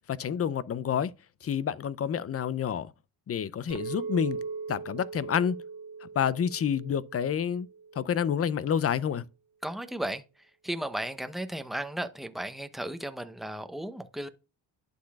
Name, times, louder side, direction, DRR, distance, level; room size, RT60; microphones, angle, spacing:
voice 1, 0.1-1.1 1.4-2.9 3.3-4.4 4.7-5.6 6.0-7.7 8.0-9.2, left 8 dB, 35° left, 0.5 m, -28 dB
Chink clink, 3.7-8.2, right 5 dB, 90° right, 2.0 m, -39 dB
voice 2, 9.6-10.2 10.6-14.3, right 1 dB, ahead, 0.8 m, -35 dB
11.5 x 4.0 x 2.3 m
cardioid pair, 80°, 43 cm